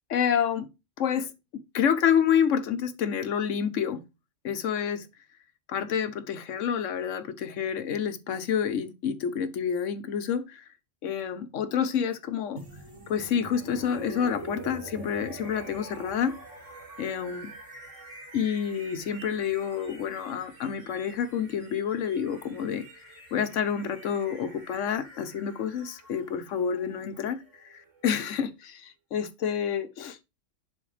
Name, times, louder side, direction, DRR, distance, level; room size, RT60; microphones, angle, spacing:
voice 1, 0.1-0.7 1.0-4.0 4.4-5.0 5.7-10.6 11.0-12.6 13.1-16.4 17.0-17.5 18.3-22.9 23.3-30.2, left 8 dB, 80° left, 1.1 m, -28 dB
sound 1, 12.6-28.4, right 3 dB, 75° right, 2.3 m, -46 dB
11.0 x 4.2 x 3.3 m
omnidirectional pair, 1.3 m